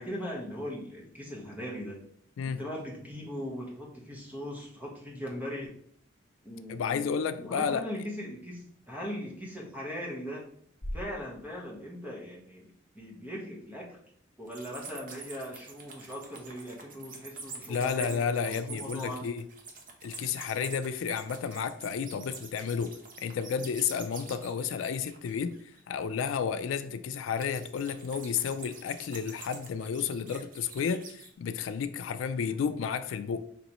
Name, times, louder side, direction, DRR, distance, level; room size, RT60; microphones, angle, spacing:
voice 1, 0.0-2.0 2.4-5.7 6.4-7.1 7.4-10.5 10.9-12.7 12.9-14.0 14.4-19.3 32.3-32.6, equal, 10° right, 1.0 m, -39 dB
voice 2, 6.7-7.8 17.7-19.4 20.0-25.5 25.9-33.4, left 6 dB, 80° left, 0.3 m, -32 dB
sound 1, 10.8-12.9, equal, 35° left, 0.9 m, -43 dB
sound 2, 14.5-25.8 27.4-31.3, right 4 dB, 45° right, 0.7 m, -46 dB
5.1 x 3.0 x 2.9 m
head